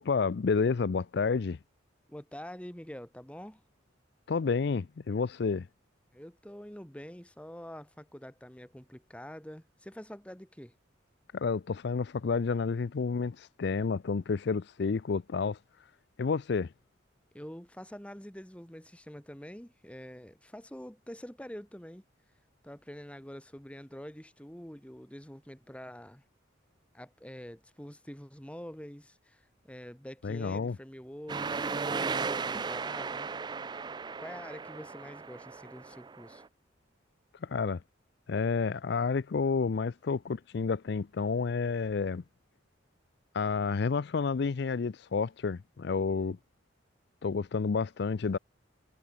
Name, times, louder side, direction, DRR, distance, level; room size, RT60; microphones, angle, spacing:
voice 1, 0.0-1.6 4.3-5.7 11.3-15.6 16.2-16.7 30.2-30.8 37.4-37.8 38.3-42.2 43.3-46.4 47.2-48.4, left 5 dB, 55° left, 0.4 m, -30 dB
voice 2, 2.1-3.6 6.1-10.7 17.3-22.0 22.6-26.2 26.9-33.3 34.2-36.4, equal, 5° left, 1.6 m, -46 dB
sound 1, 31.3-36.5, right 4 dB, 20° right, 0.3 m, -36 dB
head